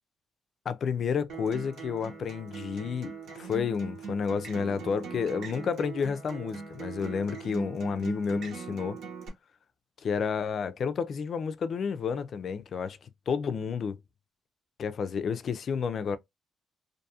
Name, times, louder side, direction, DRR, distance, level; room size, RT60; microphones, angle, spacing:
voice 1, 0.7-9.0 10.0-13.0 13.3-14.0 14.8-16.2, left 6 dB, 55° left, 0.4 m, -31 dB
Acoustic guitar, 1.3-9.3, right 5 dB, 75° right, 1.0 m, -41 dB
2.6 x 2.3 x 2.6 m
cardioid pair, 90°, 0 cm